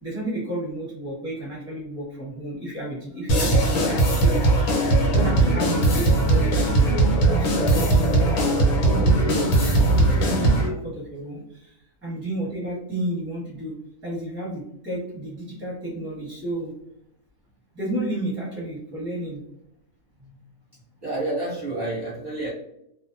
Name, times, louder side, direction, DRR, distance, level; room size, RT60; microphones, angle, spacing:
voice 1, 0.0-7.1 7.4-11.8 12.0-13.8 14.0-16.7 17.7-19.4, right 1 dB, 10° right, -5 dB, 1.0 m, -32 dB
sound 1, 3.3-10.7, right 2 dB, 85° left, 1.2 m, -19 dB
voice 2, 21.0-22.5, right 2 dB, 35° right, -9 dB, 0.9 m, -29 dB
2.5 x 2.1 x 2.5 m, 0.78 s
omnidirectional pair, 1.5 m